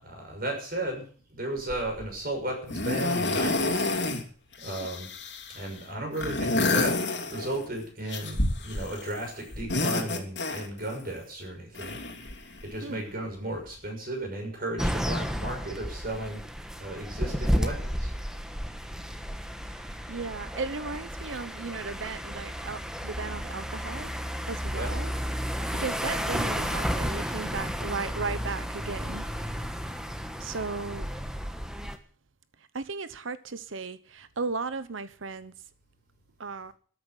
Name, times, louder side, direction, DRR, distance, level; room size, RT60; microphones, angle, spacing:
voice 1, 0.0-3.9 4.6-5.1 5.5-12.0 12.6-16.4 16.8-18.1 24.7-25.0, right 1 dB, 50° right, 6.3 m, -35 dB
sound 1, 1.7-2.0 2.7-4.2 4.5-5.7 6.1-7.7 8.1-9.2 9.5-11.0 11.7-12.8 13.7-13.8, left 2 dB, 60° left, 3.1 m, -29 dB
sound 2, 14.8-32.0, equal, 5° right, 1.2 m, -32 dB
voice 2, 19.7-24.1 24.5-25.1 25.7-29.3 30.4-31.1 32.7-35.5 36.4-36.7, right 4 dB, 75° right, 0.9 m, -36 dB
13.5 x 9.7 x 8.0 m
head